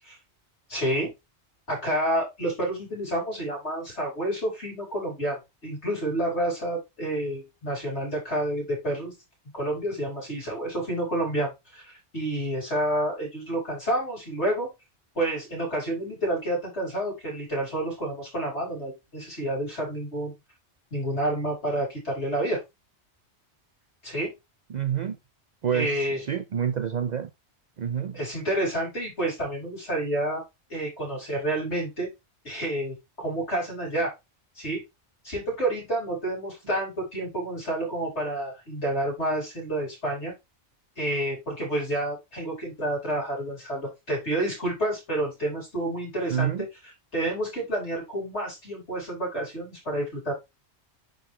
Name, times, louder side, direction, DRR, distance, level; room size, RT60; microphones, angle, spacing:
voice 1, 0.7-1.1 1.7-9.1 9.5-14.7 15.2-20.3 20.9-22.6 24.0-24.3 25.7-26.2 28.1-30.4 30.7-32.1 32.4-34.1 34.6-34.8 35.2-40.3 41.0-46.7 47.1-50.3, right 1 dB, 80° left, 5.4 m, -29 dB
voice 2, 24.7-25.2 25.6-27.3 27.8-28.2 46.3-46.7, right 8 dB, 55° right, 0.5 m, -28 dB
10.5 x 3.8 x 3.2 m
omnidirectional pair, 1.1 m